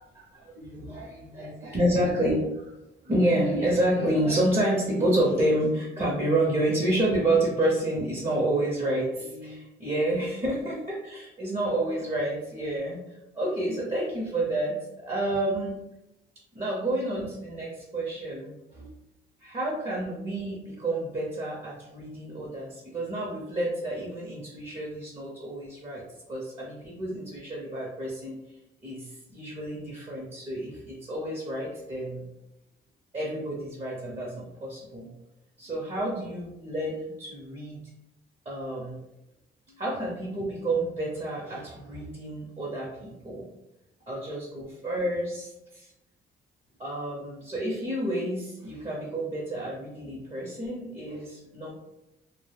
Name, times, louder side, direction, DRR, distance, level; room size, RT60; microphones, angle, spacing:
voice 1, 0.0-2.7 3.0-15.8 16.5-18.9 19.4-26.0 26.3-28.4 28.8-32.3 33.1-35.1 35.6-37.8 38.4-39.0 39.7-43.5 44.1-45.9 46.8-51.7, right 1 dB, 30° right, -4 dB, 0.7 m, -29 dB
2.1 x 2.1 x 3.3 m, 0.91 s
cardioid pair, 90°, 20 cm